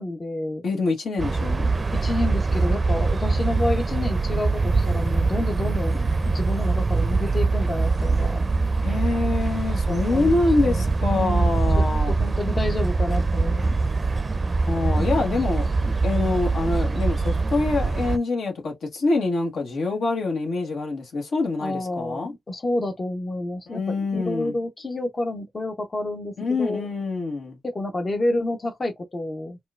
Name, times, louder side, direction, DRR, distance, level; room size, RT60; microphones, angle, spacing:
voice 1, 0.0-0.6 1.9-8.5 9.8-11.8 12.2-13.8 15.0-15.1 21.6-26.9 27.6-29.6, left 2 dB, 40° left, 0.7 m, -29 dB
voice 2, 0.6-1.7 8.8-12.1 14.7-22.3 23.7-24.5 26.4-27.6, left 3 dB, 75° left, 1.2 m, -25 dB
sound 1, 1.2-18.2, right 3 dB, 35° right, 0.4 m, -23 dB
4.4 x 2.2 x 2.4 m
cardioid pair, 60°, 0 cm